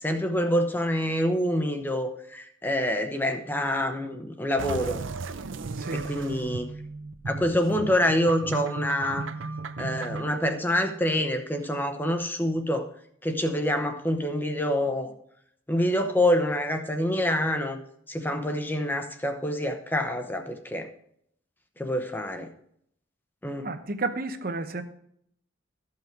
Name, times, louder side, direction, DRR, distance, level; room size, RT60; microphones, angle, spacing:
voice 1, 0.0-5.0 6.1-6.7 7.3-9.2 9.8-12.9 13.2-15.1 15.7-17.8 18.1-20.9 21.8-22.5 23.4-23.7, left 1 dB, 10° left, 5 dB, 0.9 m, -26 dB
sound 1, 4.6-10.4, right 3 dB, 80° right, 0.6 m, -35 dB
voice 2, 5.8-6.1 23.6-24.8, right 3 dB, 45° right, 9 dB, 0.9 m, -31 dB
14.0 x 5.8 x 4.5 m, 0.69 s
head